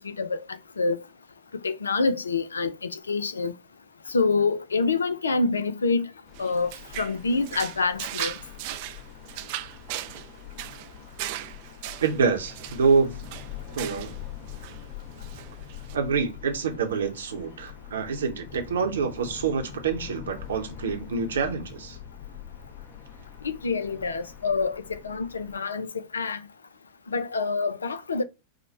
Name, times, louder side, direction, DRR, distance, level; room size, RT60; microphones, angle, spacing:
voice 1, 0.0-0.4 0.8-1.0 1.6-3.5 4.1-6.1 6.4-6.7 7.0-8.3 23.4-26.4 27.1-28.2, left 4 dB, 75° left, 0.4 m, -26 dB
sound 1, 6.2-25.6, left 9 dB, 35° left, 2.1 m, -43 dB
sound 2, 6.3-14.2 14.5-14.9 15.2-16.0, right 14 dB, 50° right, 0.3 m, -38 dB
voice 2, 12.0-13.2 13.7-14.1 15.9-22.0, right 5 dB, 65° right, 0.8 m, -26 dB
5.1 x 2.1 x 4.1 m
figure-of-eight pair, 90°, 0 cm